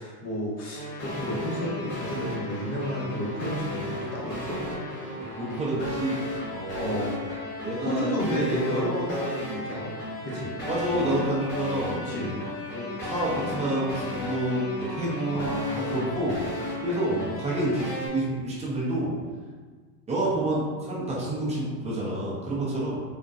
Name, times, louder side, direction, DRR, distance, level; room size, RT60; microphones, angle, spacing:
voice 1, 0.0-4.6 6.7-7.2 7.8-9.9 10.2-10.5 12.1-12.4 15.3-16.4 17.1-17.4, equal, 30° left, -4 dB, 0.9 m, -31 dB
sound 1, 0.7-18.1, left 1 dB, 55° left, 1.4 m, -34 dB
voice 2, 5.4-6.2 6.5-7.1 7.6-8.7 10.7-12.0 12.7-16.4 16.8-19.1 20.1-23.0, right 1 dB, 15° right, -6 dB, 0.6 m, -29 dB
3.6 x 2.2 x 2.5 m, 1.5 s
supercardioid pair, 115°, 49 cm